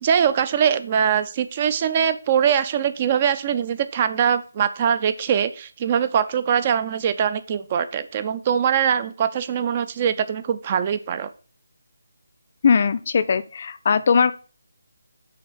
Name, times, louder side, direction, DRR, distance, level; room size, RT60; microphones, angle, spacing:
voice 1, 0.0-11.3, right 8 dB, 30° right, 13 dB, 0.4 m, -22 dB
voice 2, 12.6-14.3, left 6 dB, 40° left, 14 dB, 0.4 m, -19 dB
5.7 x 3.9 x 4.5 m, 0.37 s
figure-of-eight pair, 155°, 0 cm